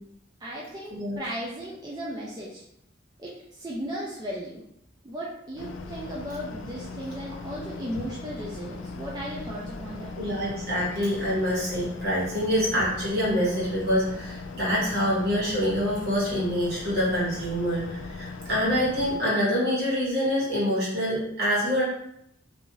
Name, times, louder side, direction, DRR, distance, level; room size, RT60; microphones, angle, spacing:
voice 1, 0.4-2.6 3.2-4.6 5.0-10.2 11.3-11.4 18.4-18.5, equal, 20° right, -5 dB, 0.4 m, -36 dB
sound 1, 5.6-19.2, left 3 dB, 80° left, 0.3 m, -39 dB
voice 2, 10.2-21.8, equal, 55° right, -7 dB, 1.4 m, -26 dB
2.7 x 2.5 x 3.0 m, 0.75 s
head